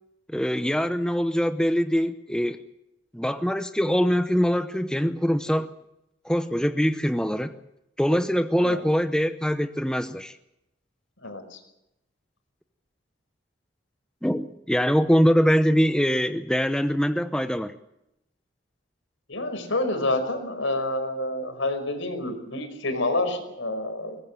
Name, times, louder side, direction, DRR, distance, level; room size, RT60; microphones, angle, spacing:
voice 1, 0.3-2.6 3.1-5.7 6.2-7.5 8.0-10.3 14.2-17.7, equal, 5° left, 9 dB, 0.8 m, -23 dB
voice 2, 11.2-11.6 19.3-24.2, left 2 dB, 80° left, 7 dB, 5.2 m, -28 dB
22.5 x 19.0 x 7.6 m, 0.87 s
head